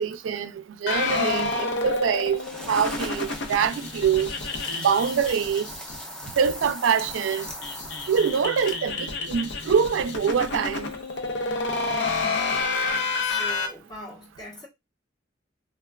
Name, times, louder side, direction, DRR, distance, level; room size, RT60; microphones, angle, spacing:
voice 1, 0.0-2.4 2.7-4.3 4.8-5.7 6.4-7.5 8.1-10.9, right 7 dB, 85° right, 0.4 m, -24 dB
sound 1, 0.9-6.0 6.2-6.3 6.6-6.7 7.0-13.7, left 3 dB, 65° left, 0.5 m, -29 dB
sound 2, 2.4-8.9, equal, 5° left, 0.4 m, -40 dB
voice 2, 12.8-14.7, left 1 dB, 20° left, 0.9 m, -42 dB
3.3 x 2.2 x 2.2 m
head